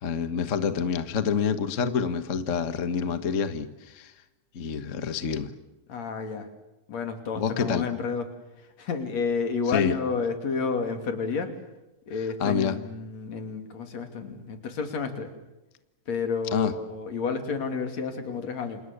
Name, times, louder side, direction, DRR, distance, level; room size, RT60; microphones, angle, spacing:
voice 1, 0.0-4.1 4.5-5.5 7.3-7.9 9.7-10.0 12.4-12.8 16.5-16.7, left 6 dB, 45° left, 10 dB, 1.0 m, -27 dB
voice 2, 5.9-6.5 6.9-8.3 8.8-11.5 12.1-15.3 16.1-18.8, left 5 dB, 60° left, 6 dB, 4.0 m, -30 dB
29.5 x 27.5 x 6.9 m, 0.99 s
omnidirectional pair, 3.4 m